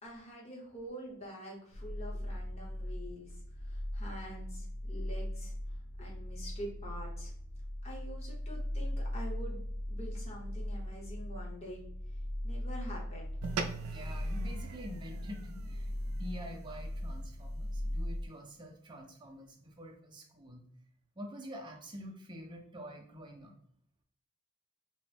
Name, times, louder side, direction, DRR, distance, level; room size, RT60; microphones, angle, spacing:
voice 1, 0.0-3.3 3.6-5.5 6.0-7.3 7.8-9.6 9.9-11.8 12.4-13.4, equal, 30° left, -3 dB, 0.8 m, -46 dB
sound 1, 1.7-18.3, left 1 dB, 90° left, 0.5 m, -39 dB
sound 2, 13.4-18.0, right 5 dB, 90° right, 0.3 m, -43 dB
voice 2, 13.8-20.6 21.2-23.5, equal, 20° right, 1 dB, 0.5 m, -47 dB
2.9 x 2.0 x 3.2 m, 0.65 s
head